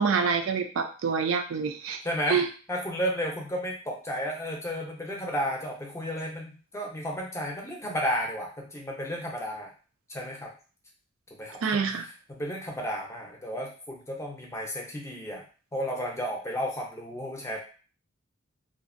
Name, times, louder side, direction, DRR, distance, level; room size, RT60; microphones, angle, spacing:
voice 1, 0.0-2.0 2.3-2.5 11.6-12.1, right 5 dB, 75° right, 6 dB, 0.4 m, -26 dB
voice 2, 2.0-2.4 2.7-9.7 10.1-10.5 11.4-11.8 12.3-15.4 15.7-17.6, equal, 15° left, -1 dB, 0.5 m, -33 dB
2.5 x 2.0 x 2.5 m, 0.37 s
head